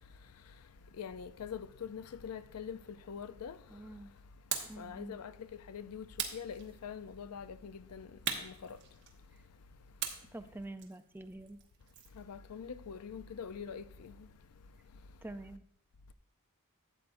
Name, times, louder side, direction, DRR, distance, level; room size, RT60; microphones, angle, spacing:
voice 1, 1.0-2.8 3.1-3.6 4.8-5.3 5.7-6.0 6.3-8.1 8.4-8.8 12.2-14.1, left 7 dB, 85° left, 0.5 m, -44 dB
voice 2, 3.7-4.1 4.7-5.2 10.3-11.6 15.2-15.7, right 1 dB, 10° right, 0.4 m, -46 dB
sound 1, 4.5-4.8 6.2-7.1 8.2-9.4 10.0-12.2, right 8 dB, 55° right, 1.2 m, -40 dB
12.5 x 8.0 x 2.6 m
head